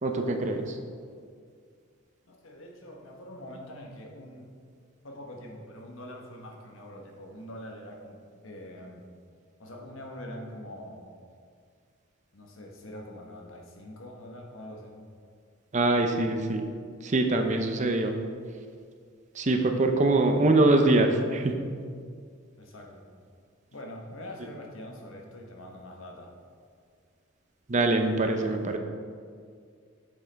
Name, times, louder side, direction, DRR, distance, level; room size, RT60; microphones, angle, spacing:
voice 1, 0.0-0.8 15.7-16.7 17.0-18.2 19.3-21.6 27.7-28.8, right 2 dB, 35° right, 5 dB, 0.6 m, -24 dB
voice 2, 2.3-4.5 5.0-9.0 9.6-11.1 12.3-14.9 22.6-23.0 23.7-26.3, left 1 dB, 75° left, 1 dB, 1.2 m, -44 dB
9.2 x 7.2 x 3.4 m, 2.1 s
head